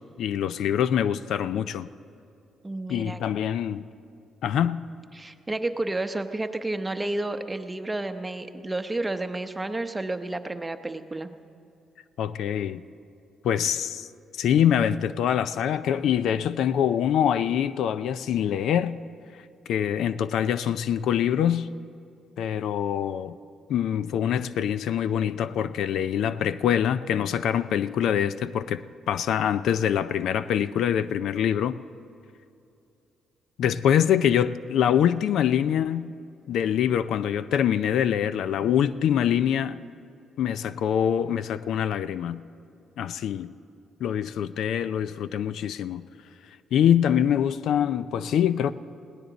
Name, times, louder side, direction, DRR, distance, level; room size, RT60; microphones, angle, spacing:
voice 1, 0.2-1.9 2.9-3.8 4.4-4.8 12.2-12.8 13.4-14.1 14.4-19.0 19.7-21.7 22.4-23.4 23.7-28.8 29.1-31.8 33.6-36.1 36.5-39.8 40.4-42.4 43.0-43.5 44.0-46.1 46.7-48.7, left 9 dB, 75° left, 0.4 m, -24 dB
voice 2, 2.6-3.2 5.1-11.3, right 2 dB, 15° right, 0.8 m, -31 dB
20.0 x 17.5 x 4.0 m
cardioid pair, 90°, 0 cm